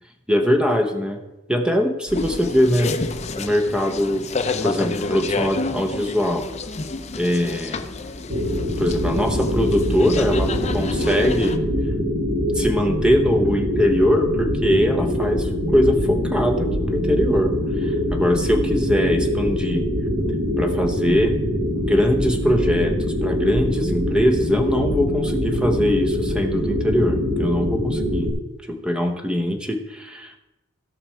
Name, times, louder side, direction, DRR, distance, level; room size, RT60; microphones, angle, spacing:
voice 1, 0.3-1.2 1.5-3.0 3.4-4.2 4.6-6.5 7.2-7.8 8.4-11.6 12.5-17.5 17.8-19.9 20.6-21.4 21.8-28.3 28.7-30.4, equal, 5° right, 4 dB, 1.0 m, -22 dB
sound 1, 2.1-11.6, left 3 dB, 35° left, 0.6 m, -29 dB
sound 2, 8.3-28.3, equal, 70° right, 2.6 m, -23 dB
17.0 x 6.0 x 4.5 m, 1.0 s
head